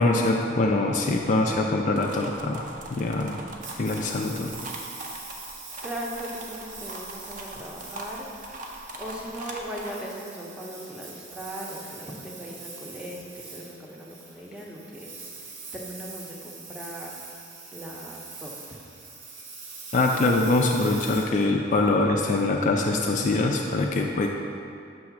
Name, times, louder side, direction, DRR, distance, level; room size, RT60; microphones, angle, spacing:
voice 1, 0.0-3.4 3.8-4.5 19.9-24.3, left 2 dB, 40° left, 1 dB, 0.4 m, -23 dB
sound 1, 2.0-9.9, right 1 dB, 45° right, 0.6 m, -41 dB
Engine, 3.6-22.1, right 4 dB, 75° right, 0.9 m, -43 dB
voice 2, 5.8-8.3 8.6-17.3 17.7-18.8, equal, 5° right, -3 dB, 0.7 m, -39 dB
6.9 x 3.2 x 5.8 m, 2.4 s
head